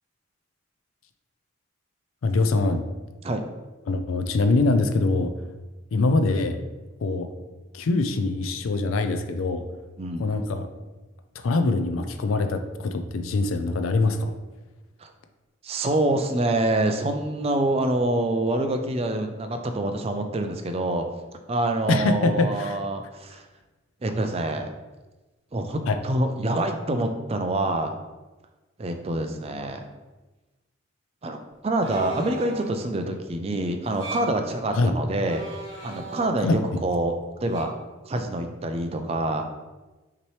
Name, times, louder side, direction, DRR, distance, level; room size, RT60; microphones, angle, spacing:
voice 1, 2.2-2.8 3.9-5.3 5.9-6.6 7.0-7.3 7.7-9.6 10.2-10.7 11.4-14.3 21.9-22.8 25.9-26.0 34.7-34.9 36.4-36.6, left 3 dB, 85° left, 8 dB, 0.4 m, -23 dB
voice 2, 10.0-10.3 15.0-15.1 15.6-21.0 21.5-23.4 24.0-24.7 25.5-28.0 28.8-29.9 31.2-31.4 31.6-35.4 35.8-37.1 37.4-37.7 38.1-39.5, right 2 dB, 30° right, 6 dB, 0.4 m, -26 dB
sound 1, 31.8-32.8 33.8-34.4 35.2-36.6 37.5-37.6, right 2 dB, 60° right, 1.5 m, -38 dB
5.8 x 2.9 x 3.1 m, 1.2 s
head